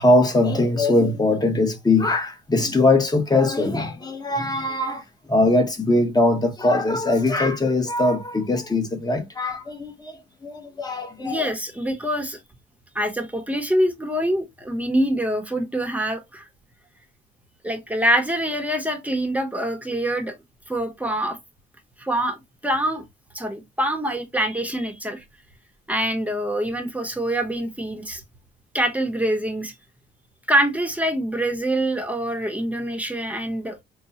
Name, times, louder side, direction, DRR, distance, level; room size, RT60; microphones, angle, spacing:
voice 1, 0.0-10.2 10.4-11.5, left 2 dB, 20° left, 1.2 m, -21 dB
voice 2, 11.2-12.4 12.9-16.4 17.6-20.4 20.7-21.4 22.0-22.4 22.6-23.0 23.3-25.2 25.9-28.2 28.7-29.7 30.5-33.8, right 1 dB, 5° right, 1.0 m, -25 dB
5.2 x 2.2 x 2.9 m
cardioid pair, 90°, 20 cm